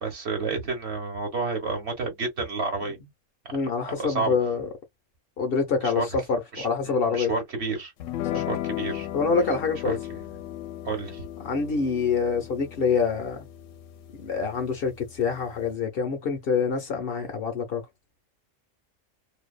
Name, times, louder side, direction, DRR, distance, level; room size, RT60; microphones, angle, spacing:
voice 1, 0.0-3.0 3.9-4.3 5.8-6.1 6.5-7.9 8.3-9.1 9.8-10.0 10.8-11.2, right 3 dB, 60° right, 1.2 m, -30 dB
voice 2, 3.5-4.7 5.4-7.3 8.3-8.4 9.1-10.0 11.4-13.4 14.2-17.8, left 5 dB, 55° left, 0.8 m, -26 dB
sound 1, 8.0-15.8, left 12 dB, 80° left, 0.9 m, -36 dB
2.6 x 2.2 x 2.3 m
omnidirectional pair, 1.3 m